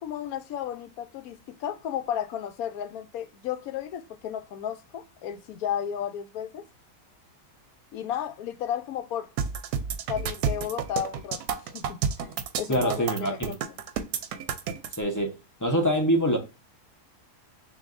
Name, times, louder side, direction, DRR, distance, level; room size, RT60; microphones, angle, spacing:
voice 1, 0.0-6.6 7.9-9.3 10.1-11.4 11.7-13.6, left 9 dB, 75° left, 1.0 m, -33 dB
sound 1, 9.4-15.0, right 7 dB, 80° right, 1.1 m, -30 dB
voice 2, 12.7-13.5 15.0-15.3 15.6-16.4, equal, 15° left, 0.6 m, -24 dB
6.4 x 2.7 x 2.5 m
omnidirectional pair, 1.6 m